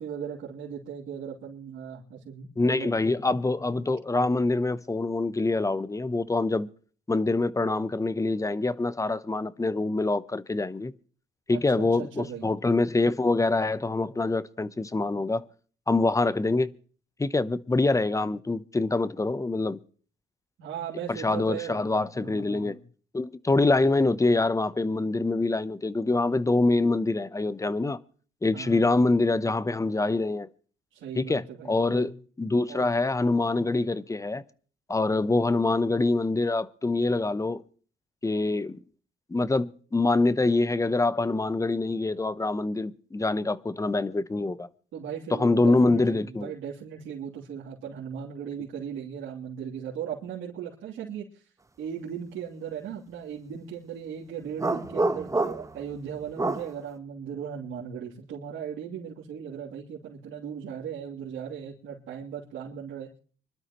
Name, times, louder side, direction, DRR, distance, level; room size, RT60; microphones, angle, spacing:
voice 1, 0.0-3.0 11.5-12.4 20.6-22.8 28.5-29.0 30.9-32.1 32.7-32.8 44.9-51.5 51.8-63.1, right 8 dB, 85° right, 3.1 m, -38 dB
voice 2, 2.6-6.7 7.1-10.9 11.5-15.5 15.9-16.7 17.2-19.8 21.1-22.8 23.1-28.0 28.4-30.5 31.2-34.4 34.9-37.6 38.2-38.8 39.3-44.7 45.3-46.5, left 2 dB, 15° left, 0.8 m, -25 dB
sound 1, 54.6-55.8 56.4-56.7, right 2 dB, 15° right, 1.1 m, -27 dB
25.5 x 12.0 x 3.1 m
cardioid pair, 90°, 20 cm